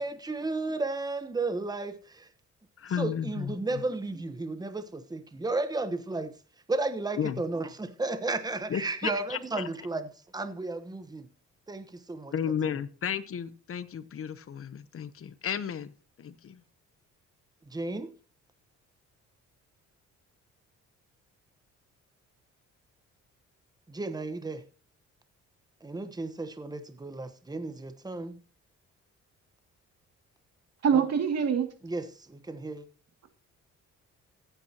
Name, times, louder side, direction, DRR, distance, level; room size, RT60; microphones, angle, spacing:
voice 1, 0.0-2.3 3.0-6.3 6.7-11.3 11.7-12.3 17.7-18.1 23.9-24.6 25.8-28.4 30.9-31.0 31.8-32.9, right 2 dB, 15° right, 1.1 m, -33 dB
voice 2, 2.8-3.8 7.2-7.4 8.7-9.7 12.3-15.9 16.2-16.6, left 8 dB, 45° left, 0.9 m, -33 dB
voice 3, 30.8-31.7, right 7 dB, 55° right, 2.4 m, -24 dB
16.5 x 9.2 x 2.9 m
cardioid pair, 90°, 30 cm